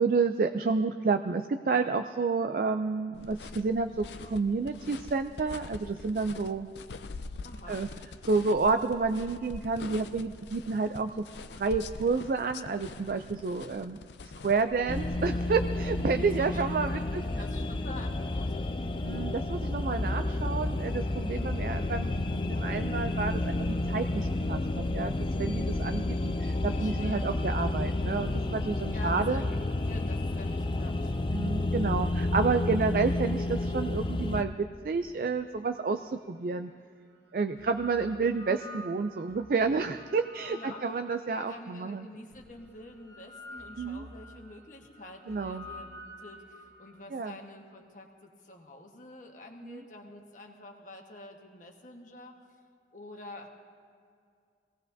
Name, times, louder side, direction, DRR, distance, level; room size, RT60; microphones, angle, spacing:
voice 1, 0.0-6.7 7.7-7.9 8.2-11.3 11.6-14.0 14.4-17.2 19.0-25.1 25.4-29.4 31.3-36.7 37.3-42.1 43.8-44.1 45.3-45.7 47.1-47.4 49.6-49.8, right 4 dB, 50° right, 8 dB, 0.4 m, -30 dB
sound 1, 3.1-15.1, left 3 dB, 80° left, 0.5 m, -44 dB
voice 2, 7.4-7.8 16.0-18.7 26.7-27.3 28.9-31.2 40.5-40.8 41.2-45.9 46.2-52.3 52.9-53.5, left 2 dB, 45° left, 2 dB, 1.3 m, -47 dB
sound 2, 14.9-34.4, left 2 dB, 30° left, 0.4 m, -30 dB
sound 3, 36.2-36.3 37.3-41.6 42.3-47.0, left 1 dB, 70° right, 1.0 m, -49 dB
23.0 x 17.5 x 2.7 m, 2.2 s
head